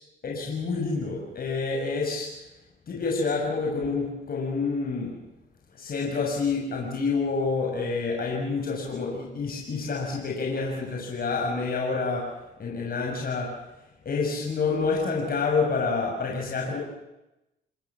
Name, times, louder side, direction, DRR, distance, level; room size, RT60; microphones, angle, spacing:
voice 1, 0.2-2.4 2.9-5.2 5.7-13.6 14.0-16.8, left 4 dB, 50° left, -1 dB, 6.6 m, -28 dB
28.5 x 20.5 x 7.4 m, 0.93 s
cardioid pair, 90°, 20 cm